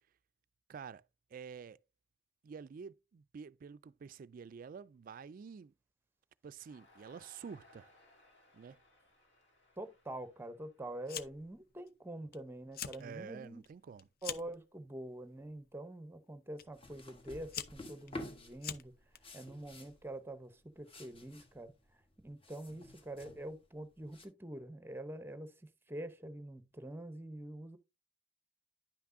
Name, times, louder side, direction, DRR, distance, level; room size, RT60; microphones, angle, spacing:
voice 1, 0.7-1.0 1.3-1.8 2.4-5.7 6.4-7.9 8.5-8.8 13.0-14.1, right 6 dB, 50° right, 0.3 m, -49 dB
Crowd, 6.6-11.8, left 1 dB, 70° left, 2.5 m, -66 dB
voice 2, 9.8-13.6 14.2-18.9 19.3-21.7 22.2-27.8, right 1 dB, 10° right, 0.7 m, -46 dB
Fire, 11.1-11.6 11.9-12.4 12.6-13.0 13.4-14.6 15.4-15.7 16.6-16.7 17.2-19.2, left 9 dB, 55° left, 0.5 m, -44 dB
sound 1, 16.7-24.3, left 1 dB, 30° left, 1.2 m, -51 dB
10.5 x 5.9 x 2.6 m
head